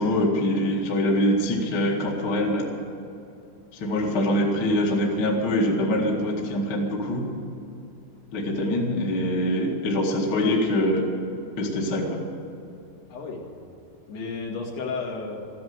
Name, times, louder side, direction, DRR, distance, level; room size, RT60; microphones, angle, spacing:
voice 1, 0.0-2.7 3.8-7.2 8.3-11.0 11.6-12.2, left 1 dB, 50° left, -1 dB, 1.3 m, -24 dB
voice 2, 13.1-13.4 14.1-15.4, left 4 dB, 65° left, -2 dB, 4.1 m, -33 dB
14.5 x 10.5 x 9.5 m, 2.6 s
omnidirectional pair, 5.2 m